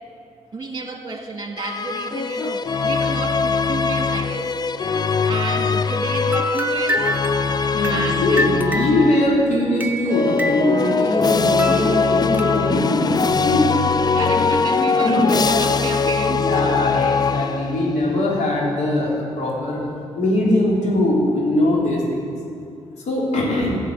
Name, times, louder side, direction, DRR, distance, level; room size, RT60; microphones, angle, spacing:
voice 1, 0.5-4.6 5.2-7.1 7.9-9.2 14.1-17.0, right 3 dB, 35° right, 4 dB, 1.7 m, -31 dB
sound 1, 1.6-9.4 10.0-18.0, left 5 dB, 35° left, 0.5 m, -21 dB
sound 2, 6.3-11.3 11.6-12.9, equal, 15° right, 1.0 m, -28 dB
voice 2, 7.7-13.8 14.3-14.4 15.0-15.6 16.3-19.8 20.2-22.3 23.1-23.8, left 1 dB, 70° left, -3 dB, 3.2 m, -21 dB
12.0 x 6.0 x 8.5 m, 2.6 s
supercardioid pair, 55°, 12 cm